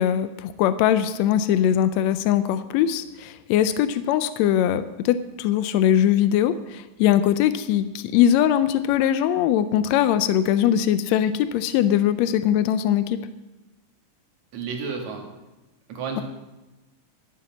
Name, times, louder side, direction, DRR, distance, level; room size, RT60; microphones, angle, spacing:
voice 1, 0.0-13.2, left 10 dB, 85° left, 12 dB, 1.5 m, -21 dB
voice 2, 14.5-15.2 15.9-16.2, right 5 dB, 65° right, 1 dB, 3.2 m, -31 dB
12.0 x 8.4 x 7.2 m, 1.1 s
omnidirectional pair, 3.6 m